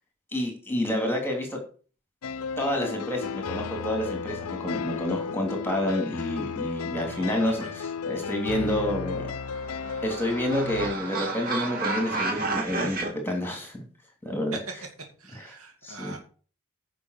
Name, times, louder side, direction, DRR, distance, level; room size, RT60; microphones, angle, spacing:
voice 1, 0.3-1.6 2.6-9.3 10.0-13.8 14.2-14.6 15.3-15.4 15.8-16.2, left 1 dB, 10° left, 2 dB, 3.3 m, -29 dB
sound 1, 2.2-10.9, left 5 dB, 80° left, 0.6 m, -34 dB
voice 2, 6.9-7.8 14.5-14.6 15.2-16.2, right 3 dB, 80° right, 2 dB, 2.6 m, -42 dB
sound 2, 9.2-13.1, right 3 dB, 40° right, 2.5 m, -31 dB
10.0 x 5.9 x 6.8 m, 0.39 s
head